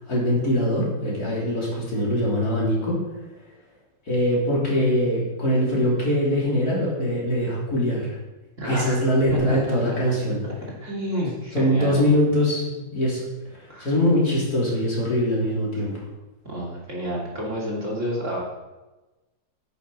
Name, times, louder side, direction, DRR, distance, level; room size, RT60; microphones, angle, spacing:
voice 1, 0.1-3.0 4.1-8.2 8.6-10.4 11.5-13.2 13.6-16.0, equal, 50° left, -5 dB, 3.9 m, -22 dB
voice 2, 8.6-9.0 9.3-10.1 10.8-12.1 13.7-13.9 16.4-18.4, equal, 40° right, -4 dB, 3.1 m, -29 dB
11.0 x 9.2 x 5.5 m, 1.1 s
omnidirectional pair, 2.0 m